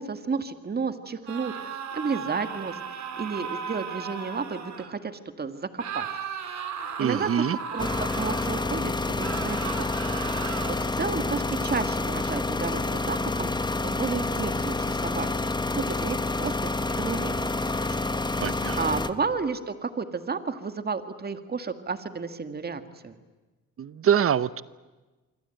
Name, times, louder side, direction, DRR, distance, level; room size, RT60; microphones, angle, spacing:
voice 1, 0.0-6.1 7.0-9.9 10.3-15.3 15.8-17.9 18.4-18.5 18.8-23.2, right 5 dB, 30° right, 9 dB, 2.0 m, -32 dB
sound 1, 1.3-4.9 5.8-8.7 9.2-10.7, right 7 dB, 65° right, 3.2 m, -36 dB
voice 2, 7.0-7.6 18.4-18.8 23.8-24.6, right 9 dB, 50° right, 17 dB, 0.8 m, -24 dB
sound 2, 7.8-19.1, left 2 dB, 15° left, 1.2 m, -28 dB
26.0 x 24.5 x 9.2 m, 1.2 s
cardioid pair, 90°, 30 cm